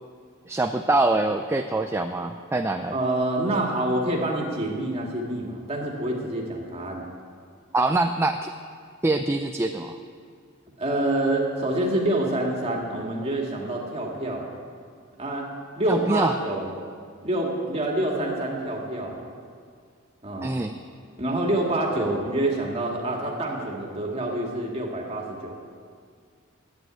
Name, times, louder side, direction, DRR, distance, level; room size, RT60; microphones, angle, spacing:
voice 1, 0.5-3.0 7.7-8.5 9.0-10.0 15.9-16.3 20.4-20.8 22.0-22.1, right 2 dB, 15° right, 6 dB, 0.4 m, -24 dB
voice 2, 2.9-7.0 10.8-14.5 15.2-15.5 15.8-16.7 17.2-19.3 20.2-20.5 21.2-25.5, right 1 dB, 30° right, -1 dB, 2.1 m, -27 dB
11.0 x 9.6 x 9.0 m, 2.1 s
head